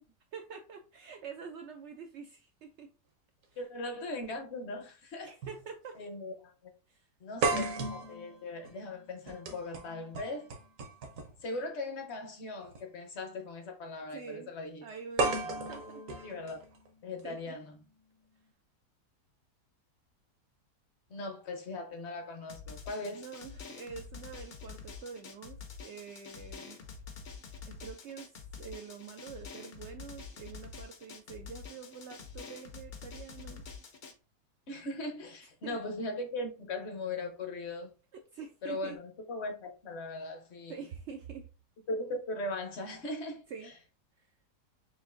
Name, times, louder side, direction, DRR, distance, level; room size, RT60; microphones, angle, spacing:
voice 1, 0.3-2.9 5.2-6.0 6.9-7.1 14.1-14.5 14.8-15.4 15.7-16.1 17.2-17.5 23.1-26.8 27.6-33.6 35.6-35.8 38.3-39.0 40.7-41.5 43.5-43.7 44.2-44.3, right 6 dB, 80° right, 0.6 m, -46 dB
voice 2, 3.6-5.3 6.0-6.7 7.2-10.5 11.4-14.9 15.4-15.6 16.2-16.6 17.0-17.8 21.1-23.2 34.7-37.9 38.6-40.8 41.9-43.7, left 2 dB, 50° left, 0.9 m, -39 dB
sound 1, 4.2-4.3 5.4-5.6 6.0-6.1 7.4-11.4 12.6-12.8 15.2-17.2, right 3 dB, 60° right, 1.1 m, -35 dB
Drum, 22.5-34.1, left 5 dB, 70° left, 0.4 m, -47 dB
6.2 x 2.5 x 2.5 m
omnidirectional pair, 1.7 m